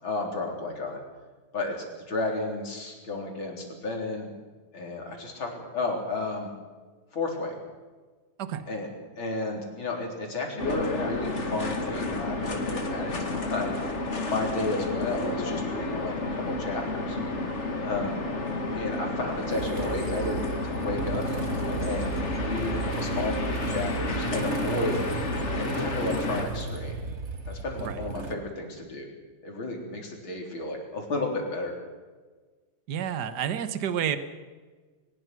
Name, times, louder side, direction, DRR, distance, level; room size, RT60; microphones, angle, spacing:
voice 1, 0.0-1.0 1.5-1.7 2.1-4.3 4.7-6.5 7.1-7.5 8.7-8.9 9.2-13.7 14.2-17.2 17.8-18.2 18.7-21.2 21.8-23.3 23.7-25.0 25.5-27.0 27.5-29.1 29.4-31.7, left 2 dB, 80° left, 1 dB, 4.7 m, -32 dB
sound 1, 10.6-26.5, left 2 dB, 35° left, 2.2 m, -31 dB
Motorcycle / Engine starting, 19.5-28.4, right 3 dB, 40° right, 1.6 m, -34 dB
voice 2, 32.9-34.2, right 9 dB, 60° right, 11 dB, 1.7 m, -30 dB
21.5 x 20.5 x 6.2 m, 1.4 s
omnidirectional pair, 2.2 m